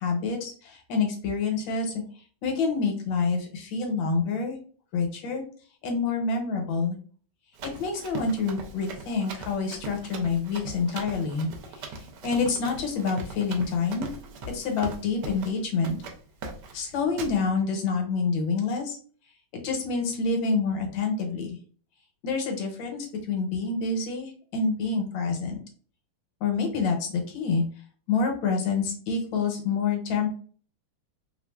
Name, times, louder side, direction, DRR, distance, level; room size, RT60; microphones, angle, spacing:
voice 1, 0.0-2.0 2.4-4.6 4.9-5.4 5.8-7.0 7.8-14.1 14.5-16.0 16.7-19.0 19.5-21.6 22.2-25.6 26.4-27.6 28.1-30.3, left 4 dB, 75° left, 3 dB, 1.4 m, -27 dB
Run, 7.6-15.6 15.8-16.2 16.4-16.8 17.2-17.4, right 3 dB, 70° right, 1.1 m, -40 dB
3.2 x 2.4 x 2.2 m, 0.43 s
omnidirectional pair, 2.2 m